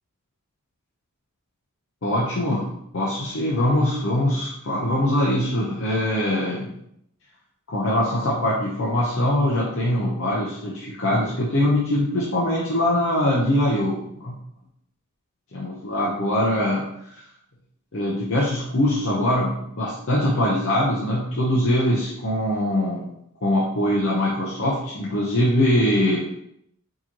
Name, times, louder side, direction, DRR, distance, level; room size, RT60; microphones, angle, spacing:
voice 1, 2.0-2.7 2.9-6.8 7.7-14.3 15.5-16.8 17.9-23.1 23.4-26.3, left 1 dB, 60° left, -5 dB, 0.8 m, -22 dB
4.8 x 3.0 x 2.8 m, 0.74 s
head